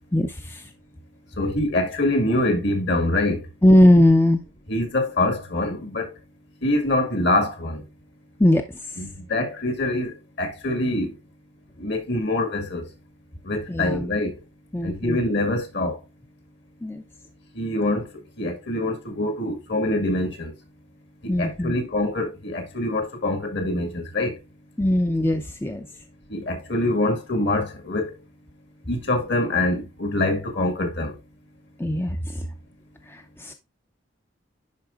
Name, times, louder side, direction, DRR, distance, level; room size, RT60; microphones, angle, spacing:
voice 1, 0.1-0.7 3.6-4.4 8.4-8.6 8.9-9.0 13.7-14.0 14.7-15.2 16.8-17.0 21.3-21.7 24.8-25.9 31.8-32.5 33.1-33.5, left 1 dB, 10° left, 0.5 m, -19 dB
voice 2, 1.4-3.4 4.7-6.2 6.6-7.8 9.0-11.2 11.8-12.9 13.4-14.4 14.8-16.0 17.6-18.1 18.4-20.5 21.2-24.4 26.3-28.1 28.9-31.2, left 1 dB, 55° left, 1.9 m, -25 dB
10.5 x 4.7 x 2.4 m
head